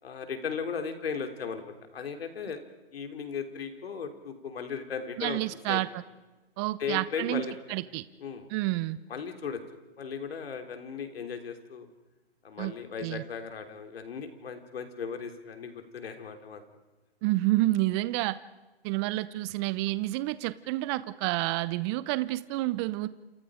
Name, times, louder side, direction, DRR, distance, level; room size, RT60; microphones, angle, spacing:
voice 1, 0.0-2.6 2.9-5.4 5.7-5.8 6.8-7.5 8.2-8.5 9.1-9.6 10.0-11.9 12.4-16.6, left 6 dB, 70° left, 6 dB, 3.6 m, -36 dB
voice 2, 5.2-6.0 6.6-7.4 7.7-8.0 8.5-9.0 12.6-12.7 13.0-13.2 17.2-18.4 18.8-23.1, right 18 dB, 25° right, 16 dB, 0.7 m, -29 dB
28.5 x 28.0 x 5.1 m, 1.1 s
hypercardioid pair, 140°, 31 cm